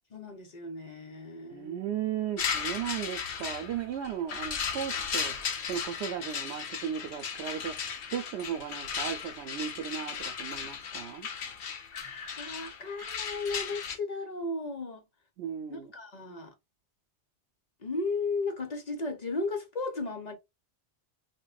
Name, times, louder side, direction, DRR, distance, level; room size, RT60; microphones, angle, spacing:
voice 1, 0.1-1.8 11.9-15.1 15.7-16.5 17.8-20.3, left 3 dB, 45° left, 0.7 m, -35 dB
voice 2, 1.5-11.3 15.4-15.9, right 9 dB, 80° right, 0.9 m, -36 dB
sound 1, 2.4-14.0, left 6 dB, 75° left, 1.0 m, -36 dB
5.1 x 2.1 x 2.3 m
omnidirectional pair, 1.2 m